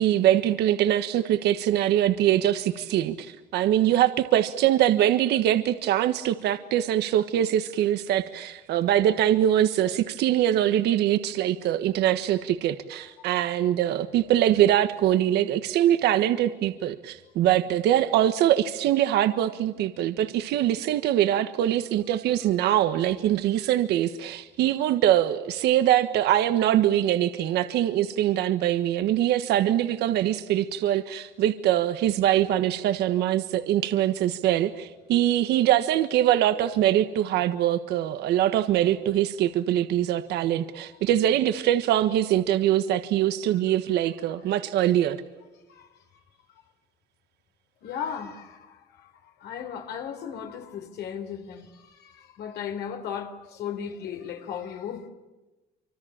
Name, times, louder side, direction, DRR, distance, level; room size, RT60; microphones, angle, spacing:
voice 1, 0.0-45.2, right 12 dB, 80° right, 10 dB, 1.4 m, -23 dB
voice 2, 44.1-44.6 45.7-46.2 47.8-55.1, left 8 dB, 75° left, 4 dB, 3.8 m, -37 dB
26.0 x 25.5 x 8.8 m, 1.1 s
cardioid pair, 110°, 17 cm